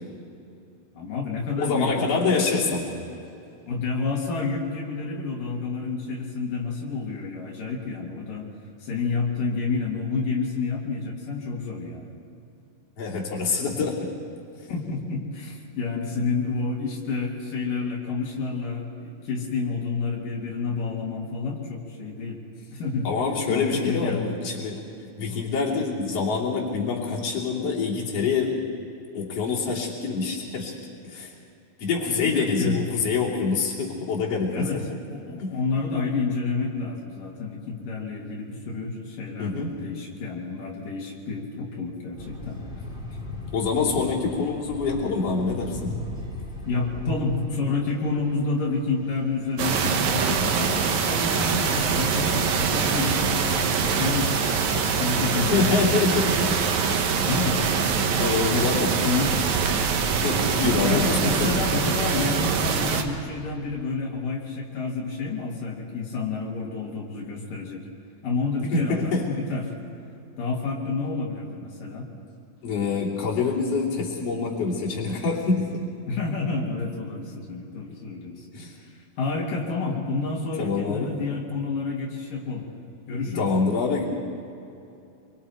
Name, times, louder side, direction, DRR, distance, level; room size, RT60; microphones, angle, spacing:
voice 1, 0.9-3.2 3.7-8.5 8.8-12.1 14.7-22.4 22.7-23.1 23.5-24.4 32.2-32.8 34.5-34.8 35.1-42.6 46.7-53.4 53.8-56.1 57.3-57.7 58.5-59.4 60.8-67.8 68.2-69.7 70.4-72.1 76.1-78.5 78.8-78.9 79.2-82.7 83.1-83.5, left 4 dB, 90° left, -3 dB, 4.3 m, -29 dB
voice 2, 1.6-2.9 13.0-14.1 23.0-24.8 25.2-28.6 29.1-30.8 31.0-31.3 31.8-34.8 35.4-35.5 39.4-39.7 43.5-46.0 55.5-57.3 58.2-58.9 60.2-61.6 68.7-69.3 72.6-75.9 78.5-78.7 80.6-81.1 83.4-84.1, left 4 dB, 50° left, -4 dB, 4.1 m, -26 dB
sound 1, 42.2-55.4, left 2 dB, ahead, 3.0 m, -40 dB
sound 2, 49.6-63.0, right 6 dB, 70° right, 2.5 m, -24 dB
27.0 x 24.0 x 4.6 m, 2.7 s
omnidirectional pair, 3.6 m